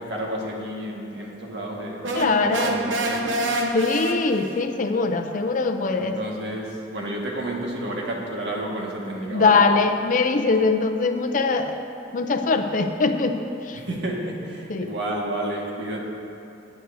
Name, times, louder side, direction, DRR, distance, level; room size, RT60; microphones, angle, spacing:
voice 1, 0.0-3.4 5.9-9.6 13.7-16.0, right 1 dB, 65° right, -2 dB, 1.7 m, -31 dB
sound 1, 2.0-4.7, right 1 dB, 85° right, 0.9 m, -27 dB
voice 2, 2.1-2.7 3.7-6.2 9.3-11.8 12.1-13.8 14.7-14.9, left 4 dB, 45° left, 6 dB, 0.5 m, -22 dB
17.0 x 9.1 x 2.7 m, 2.7 s
head